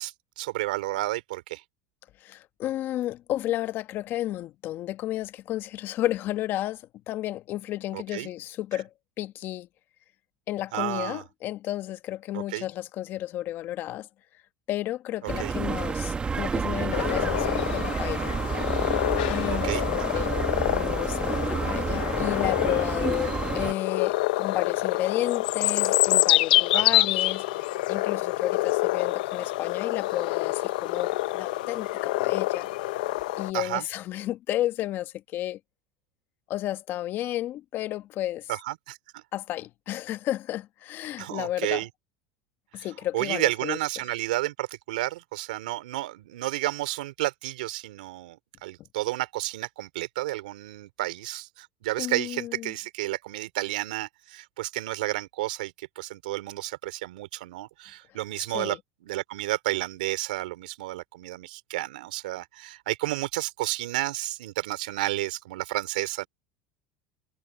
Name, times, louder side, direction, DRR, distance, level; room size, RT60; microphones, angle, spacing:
voice 1, 0.0-1.6 7.9-8.3 10.7-11.2 12.3-12.7 15.2-15.5 19.5-20.2 23.2-23.4 26.7-27.1 33.5-33.9 38.5-39.2 41.2-41.9 42.7-42.9 43.1-66.3, right 18 dB, 90° right, 2.9 m, -31 dB
voice 2, 2.2-8.9 9.2-9.7 10.5-14.1 14.7-18.3 19.3-20.3 20.6-32.7 33.4-35.6 36.5-38.5 39.3-41.8 42.7-43.8 52.0-52.7 58.5-58.8, left 14 dB, 50° left, 1.3 m, -32 dB
sound 1, 15.3-23.7, right 5 dB, 20° right, 1.6 m, -30 dB
sound 2, 16.9-33.5, left 18 dB, 85° left, 0.8 m, -27 dB
supercardioid pair, 110°, 4 cm